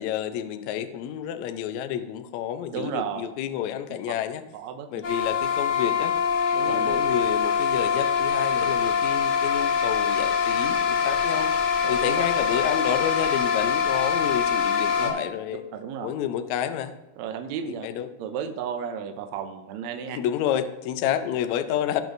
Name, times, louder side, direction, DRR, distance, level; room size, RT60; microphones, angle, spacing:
voice 1, 0.0-4.4 4.9-6.1 6.6-11.5 11.9-15.6 16.0-16.9 17.8-18.1 20.1-22.0, left 10 dB, 90° left, 9 dB, 1.6 m, -29 dB
voice 2, 2.7-3.3 4.5-4.9 6.5-7.0 11.8-12.2 15.0-15.1 15.7-16.1 17.2-17.9 18.2-20.2, right 7 dB, 80° right, 7 dB, 1.6 m, -33 dB
sound 1, 5.0-15.1, left 7 dB, 65° left, 1.3 m, -24 dB
17.5 x 6.0 x 2.6 m, 1.0 s
omnidirectional pair, 4.0 m